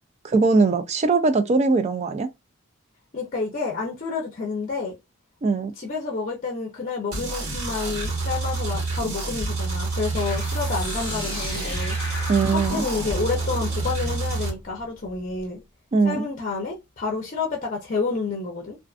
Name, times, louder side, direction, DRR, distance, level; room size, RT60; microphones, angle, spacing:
voice 1, 0.2-2.3 5.4-5.7 12.3-12.9 15.9-16.3, right 4 dB, 35° right, 0.3 m, -21 dB
voice 2, 3.1-4.9 5.8-15.6 16.0-18.8, left 4 dB, 40° left, 0.5 m, -29 dB
sound 1, 7.1-14.5, right 3 dB, 90° right, 1.2 m, -28 dB
sound 2, 10.1-15.4, left 2 dB, 25° left, 1.0 m, -38 dB
2.4 x 2.4 x 2.4 m
head